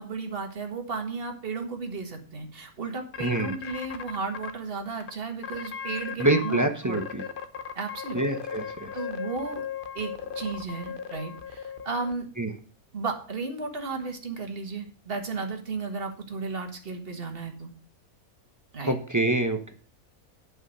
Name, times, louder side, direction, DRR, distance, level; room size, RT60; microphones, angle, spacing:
voice 1, 0.0-7.0 7.7-8.2 8.9-9.7 9.9-12.3 12.9-17.7 18.7-19.0, right 4 dB, 40° right, 4 dB, 1.7 m, -34 dB
sound 1, 3.1-4.5 5.0-5.1 5.4-6.7 6.9-12.1, left 7 dB, 45° left, 0.9 m, -37 dB
voice 2, 3.2-3.5 6.2-7.2 8.1-8.9 12.4-12.5 18.9-19.7, right 2 dB, 15° right, 5 dB, 0.8 m, -26 dB
9.2 x 5.5 x 6.3 m, 0.43 s
omnidirectional pair, 1.5 m